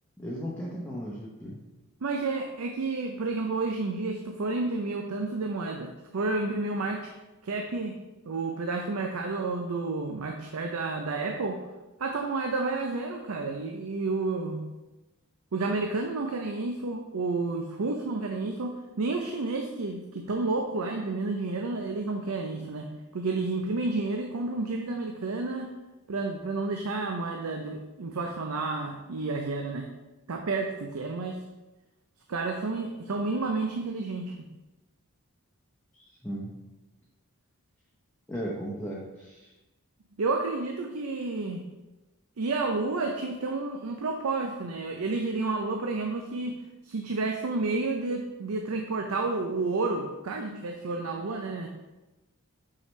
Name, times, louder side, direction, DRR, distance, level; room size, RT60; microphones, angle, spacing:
voice 1, 0.2-1.6 35.9-36.5 38.3-39.5, equal, 10° left, -6 dB, 0.8 m, -36 dB
voice 2, 2.0-7.1 7.4-8.0 8.3-11.6 12.0-14.7 15.5-25.7 26.1-29.9 30.3-31.4 32.3-34.5 40.2-41.6 42.4-46.6 46.8-51.7, right 3 dB, 75° right, 3 dB, 0.5 m, -30 dB
6.3 x 5.7 x 3.2 m, 1.1 s
head